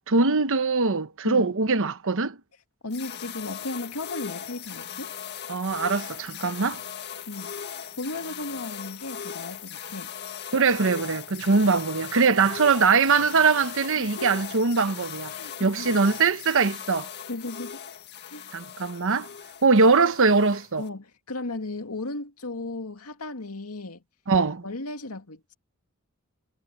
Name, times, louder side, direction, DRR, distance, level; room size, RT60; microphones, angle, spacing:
voice 1, 0.1-2.4 5.5-6.8 10.5-15.3 15.6-17.1 18.5-19.3 19.6-20.8 24.3-24.6, right 4 dB, 60° right, 1.1 m, -22 dB
voice 2, 2.8-5.1 7.3-7.5 8.0-10.1 14.0-14.3 15.3-16.0 17.3-17.8 18.3-18.5 20.8-24.0 24.6-25.5, left 2 dB, 85° left, 2.3 m, -35 dB
sound 1, 2.9-20.9, left 8 dB, 50° left, 1.7 m, -39 dB
head